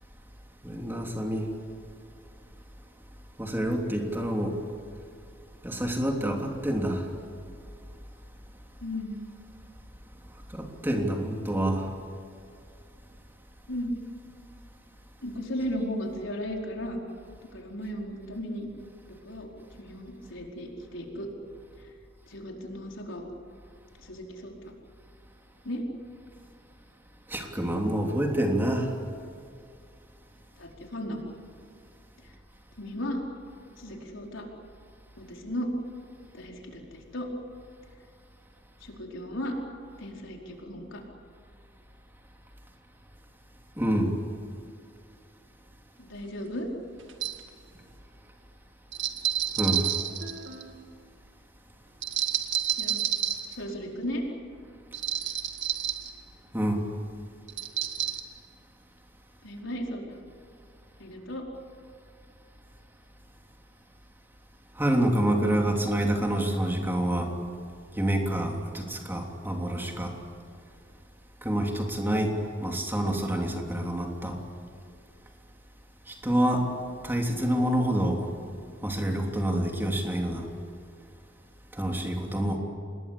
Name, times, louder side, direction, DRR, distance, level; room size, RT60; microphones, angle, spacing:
voice 1, 0.6-1.5 3.4-4.6 5.6-7.0 10.5-11.9 27.3-28.9 43.8-44.1 49.6-49.9 56.5-56.8 64.8-67.3 68.0-70.1 71.4-72.3 72.6-74.3 76.1-76.7 77.0-78.2 78.8-80.4 81.7-82.6, right 1 dB, 10° right, 1 dB, 3.2 m, -27 dB
voice 2, 8.8-9.2 13.7-13.9 15.2-17.0 17.5-18.7 19.2-19.5 19.8-21.3 22.3-23.2 24.0-24.5 25.6-25.8 30.6-31.2 32.8-33.2 33.8-34.4 35.2-35.7 36.3-36.8 37.1-37.3 38.8-39.5 40.0-41.0 46.0-46.7 52.8-53.1 53.6-54.2 59.4-60.2 61.0-61.4, equal, 75° left, 0 dB, 4.8 m, -35 dB
sound 1, 46.2-46.3 47.1-47.4 48.9-50.7 52.0-53.5 54.9-56.1 57.5-58.2, right 10 dB, 65° right, 2.1 m, -29 dB
27.5 x 20.5 x 8.7 m, 2.4 s
head